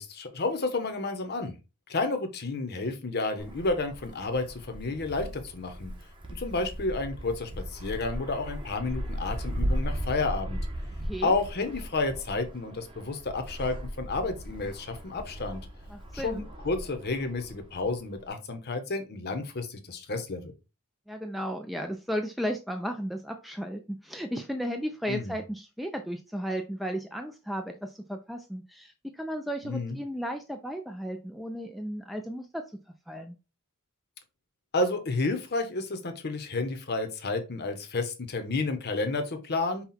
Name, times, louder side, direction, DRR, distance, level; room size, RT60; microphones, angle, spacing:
voice 1, 0.0-1.6 1.9-5.9 6.3-10.6 11.2-15.6 16.1-20.5 25.1-25.4 29.6-30.0 34.7-39.9, left 3 dB, 45° left, 7 dB, 0.9 m, -31 dB
Wind, 3.4-18.3, equal, 25° right, 0.9 m, -37 dB
voice 2, 11.0-11.3 15.9-16.4 21.1-32.6 33.1-33.3, equal, ahead, 4 dB, 0.4 m, -34 dB
5.6 x 2.3 x 4.1 m, 0.29 s
head